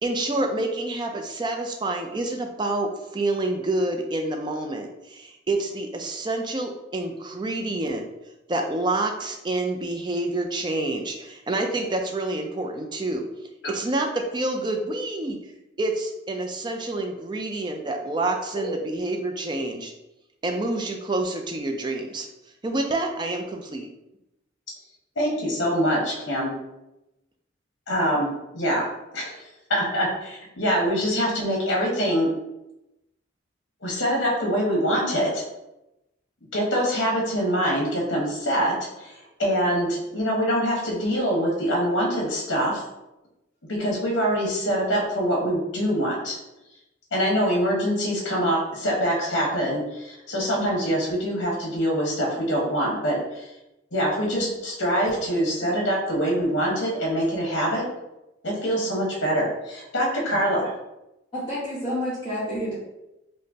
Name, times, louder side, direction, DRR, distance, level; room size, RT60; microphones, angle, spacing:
voice 1, 0.0-8.0 8.5-13.2 13.7-15.4 15.8-19.9 20.4-22.3 22.6-23.9, right 2 dB, 25° right, 3 dB, 0.3 m, -28 dB
voice 2, 25.2-26.5 27.9-28.3 28.5-28.8 29.1-29.4 29.7-32.3 33.8-35.4 36.5-39.1 39.4-42.8 43.7-46.4 47.1-53.5 53.9-57.8 58.4-60.7, equal, 65° left, -2 dB, 1.1 m, -24 dB
voice 3, 61.3-62.7, equal, 25° left, -11 dB, 1.1 m, -29 dB
5.0 x 2.1 x 2.7 m, 0.93 s
head